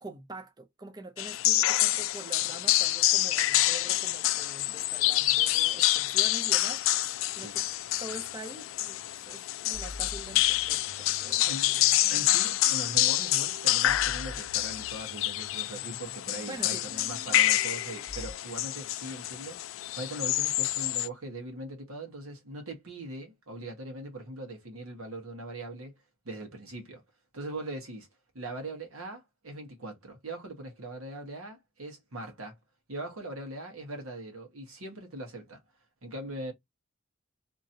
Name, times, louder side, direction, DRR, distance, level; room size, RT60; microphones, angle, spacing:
voice 1, 0.0-6.8 7.4-7.6 8.0-11.9 16.5-16.8 17.4-17.5, right 2 dB, 20° right, 0.4 m, -45 dB
sound 1, 1.2-21.1, left 15 dB, 70° left, 0.3 m, -27 dB
sound 2, 9.7-18.3, left 2 dB, 65° right, 1.6 m, -47 dB
voice 2, 12.1-19.6 19.9-25.9 26.2-27.0 27.3-28.1 28.3-32.6 32.9-35.6 36.0-36.5, right 1 dB, 90° right, 1.3 m, -41 dB
2.9 x 2.8 x 2.6 m
head